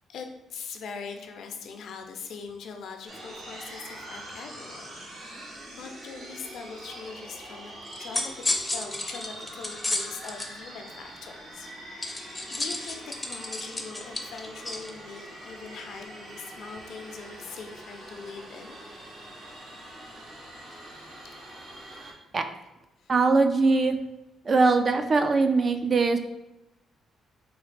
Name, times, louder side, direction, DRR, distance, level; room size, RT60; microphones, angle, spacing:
voice 1, 0.1-5.0 5.3-8.4 8.7-11.7 12.0-18.8 19.5-19.7 20.7-21.4 23.0-23.1, left 5 dB, 70° left, 4 dB, 0.5 m, -42 dB
sound 1, 3.1-22.1, right 1 dB, 60° right, 1.1 m, -44 dB
sound 2, 7.9-10.5 12.0-14.9, left 2 dB, 15° left, 0.6 m, -32 dB
voice 2, 23.1-24.0 24.4-26.2, right 3 dB, 40° right, 7 dB, 0.4 m, -21 dB
4.0 x 2.4 x 3.3 m, 0.96 s
cardioid pair, 90°, 0 cm